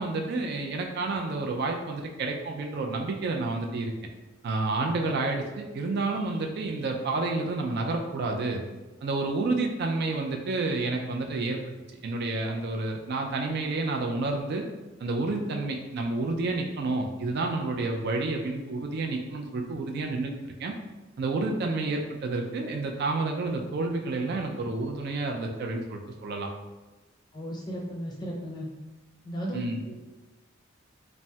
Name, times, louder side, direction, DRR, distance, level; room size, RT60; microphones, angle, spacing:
voice 1, 0.0-3.9 4.4-8.6 9.0-11.6 12.0-14.6 15.0-20.7 21.2-26.5 29.5-29.8, right 3 dB, 55° right, 2 dB, 0.4 m, -30 dB
voice 2, 27.3-28.7 29.2-30.0, equal, 20° left, -2 dB, 0.5 m, -35 dB
3.3 x 2.0 x 2.7 m, 1.1 s
head